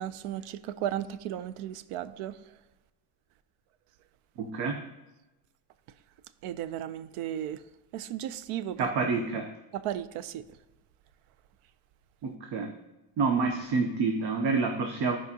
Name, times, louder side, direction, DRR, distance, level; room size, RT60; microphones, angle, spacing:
voice 1, 0.0-2.4 6.4-7.6 7.9-8.9 9.7-10.4, right 11 dB, 85° right, 0.6 m, -35 dB
voice 2, 4.4-4.8 8.8-9.5 12.2-12.7 13.2-15.2, right 4 dB, 55° right, 0.7 m, -28 dB
13.5 x 4.9 x 2.8 m
cardioid pair, 175°, 50 cm